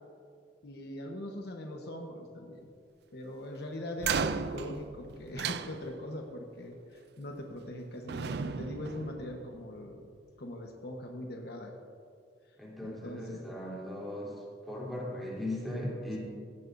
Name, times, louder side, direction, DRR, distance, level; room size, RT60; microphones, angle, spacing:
voice 1, 0.6-2.7 3.1-10.0 10.4-11.7 12.8-13.4, left 1 dB, 65° left, 2 dB, 1.2 m, -41 dB
sound 1, 4.0-6.3 7.4-7.8 8.1-9.8, right 6 dB, 65° right, 0.4 m, -35 dB
voice 2, 12.6-14.3 14.7-16.2, left 1 dB, ahead, -6 dB, 3.4 m, -38 dB
17.0 x 15.5 x 2.7 m, 2.3 s
head